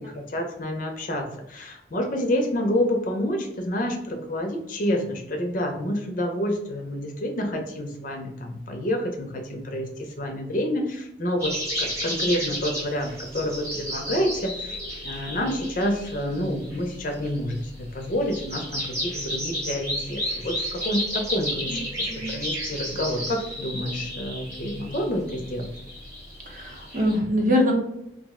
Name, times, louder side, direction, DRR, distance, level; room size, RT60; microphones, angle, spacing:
voice 1, 0.0-25.7, equal, 45° left, 3 dB, 0.5 m, -28 dB
sound 1, 11.4-27.2, equal, 15° right, 0.9 m, -33 dB
voice 2, 26.5-27.7, left 1 dB, 45° right, 0 dB, 0.6 m, -23 dB
2.4 x 2.0 x 3.5 m, 0.76 s
head